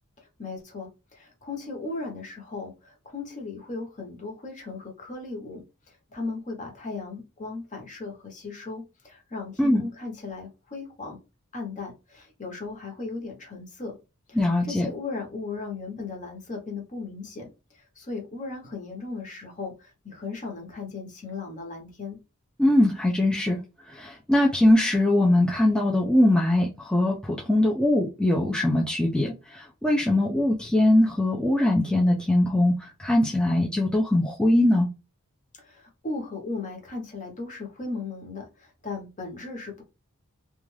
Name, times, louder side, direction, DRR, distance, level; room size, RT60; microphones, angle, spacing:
voice 1, 0.2-5.6 6.1-11.2 11.5-14.0 14.3-17.5 18.0-22.2 35.6-39.8, left 3 dB, 35° left, 0.9 m, -36 dB
voice 2, 14.4-14.9 22.6-23.6 23.9-34.9, left 1 dB, 5° left, 0.4 m, -22 dB
2.4 x 2.3 x 3.2 m
head